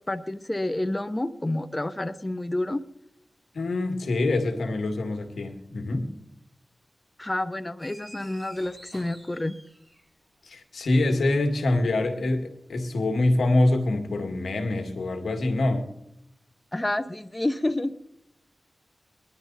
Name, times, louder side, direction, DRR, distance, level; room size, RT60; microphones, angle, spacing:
voice 1, 0.1-2.8 7.2-9.6 16.7-17.9, left 1 dB, 25° left, 11 dB, 0.8 m, -29 dB
voice 2, 3.5-6.1 10.4-15.9, left 2 dB, 85° left, 5 dB, 1.9 m, -25 dB
sound 1, 7.8-10.3, equal, 5° right, 2.9 m, -49 dB
21.5 x 11.5 x 4.0 m, 0.85 s
cardioid pair, 50°, 0 cm